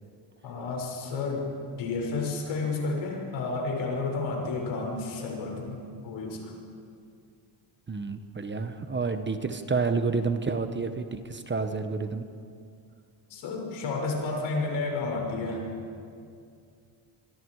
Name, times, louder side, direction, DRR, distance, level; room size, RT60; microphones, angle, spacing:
voice 1, 0.4-1.5 1.8-6.5 13.3-15.7, left 3 dB, 80° left, 0 dB, 6.3 m, -31 dB
voice 2, 7.9-12.3, right 4 dB, 25° right, 8 dB, 1.3 m, -29 dB
26.5 x 23.0 x 4.9 m, 2.4 s
cardioid pair, 110°, 46 cm